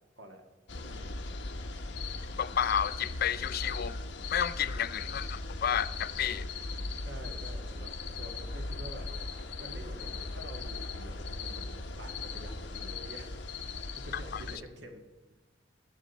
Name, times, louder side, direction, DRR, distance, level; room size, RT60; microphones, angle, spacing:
sound 1, 0.7-14.6, left 3 dB, 70° left, 1.0 m, -38 dB
voice 1, 0.8-1.2 7.0-9.1 9.5-13.3 13.8-15.0, right 1 dB, 70° right, 1.7 m, -48 dB
voice 2, 2.4-4.0 4.3-6.5 14.3-14.4, left 9 dB, 55° left, 0.4 m, -31 dB
20.0 x 7.5 x 4.0 m
head